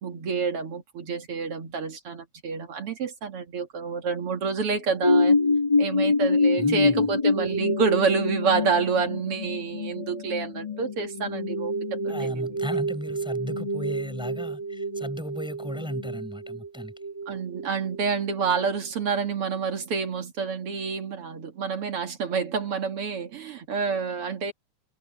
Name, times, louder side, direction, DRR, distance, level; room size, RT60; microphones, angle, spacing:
voice 1, 0.0-5.4 5.8-12.6 17.3-24.5, right 5 dB, 55° right, 2.6 m, -28 dB
sound 1, 5.0-18.6 19.1-19.2, left 2 dB, 20° left, 0.9 m, -26 dB
voice 2, 6.6-7.1 12.1-16.9, equal, ahead, 6.4 m, -35 dB
omnidirectional pair, 3.3 m